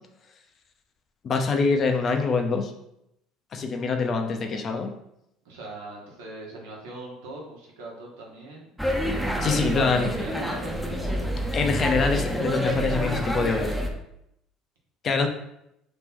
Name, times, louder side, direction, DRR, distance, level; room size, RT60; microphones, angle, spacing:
voice 1, 1.2-2.7 3.5-4.9 9.4-10.1 11.5-13.7 15.0-15.3, left 4 dB, 45° left, 5 dB, 0.6 m, -24 dB
voice 2, 5.4-8.7 9.7-11.8, right 2 dB, 85° right, -1 dB, 1.0 m, -41 dB
sound 1, 8.8-13.9, equal, ahead, 0.6 m, -27 dB
3.0 x 2.9 x 3.7 m, 0.80 s
supercardioid pair, 80°, 0 cm